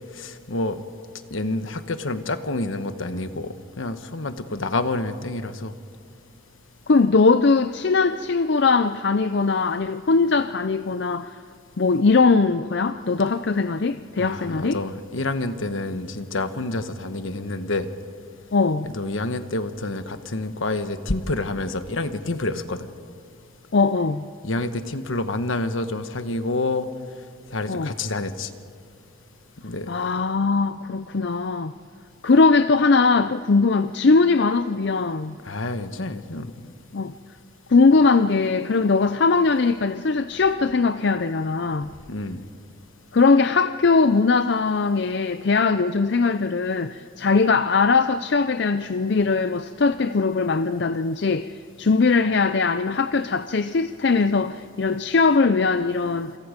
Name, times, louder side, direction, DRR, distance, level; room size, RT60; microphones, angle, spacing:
voice 1, 0.1-0.8 1.3-5.7 14.2-17.9 18.9-22.9 24.4-26.9 27.5-28.5 29.6-29.9 35.4-36.5 42.1-42.4, left 2 dB, 75° left, 9 dB, 1.3 m, -28 dB
voice 2, 6.9-11.3 11.8-14.8 18.5-18.9 23.7-24.2 27.7-27.9 29.9-31.7 32.2-35.4 36.9-37.1 37.7-41.9 43.1-56.4, left 4 dB, 55° left, 11 dB, 0.5 m, -20 dB
28.5 x 27.0 x 5.2 m, 2.3 s
head